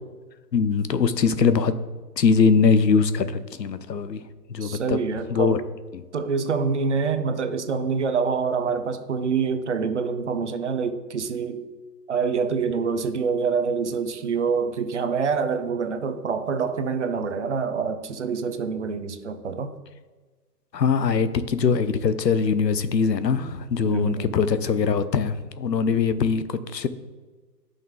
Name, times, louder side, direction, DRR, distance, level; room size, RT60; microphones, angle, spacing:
voice 1, 0.5-1.7 2.2-4.2 4.5-5.0 5.3-5.6 5.9-6.0 20.7-26.9, left 5 dB, 80° left, 12 dB, 1.0 m, -22 dB
voice 2, 4.6-5.6 6.1-11.6 12.1-19.7 23.8-24.4, right 5 dB, 45° right, 9 dB, 0.9 m, -26 dB
10.5 x 5.5 x 3.8 m, 1.3 s
hypercardioid pair, 160°, 49 cm